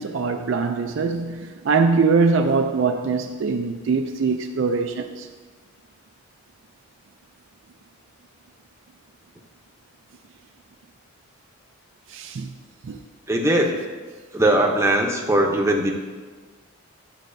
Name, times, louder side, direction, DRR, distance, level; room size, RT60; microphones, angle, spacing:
voice 1, 0.0-5.3 12.1-12.5 12.8-13.0, right 4 dB, 60° right, 5 dB, 0.4 m, -22 dB
voice 2, 13.3-13.8 14.3-15.9, right 1 dB, 15° right, 1 dB, 0.7 m, -20 dB
11.5 x 7.2 x 2.6 m, 1.4 s
head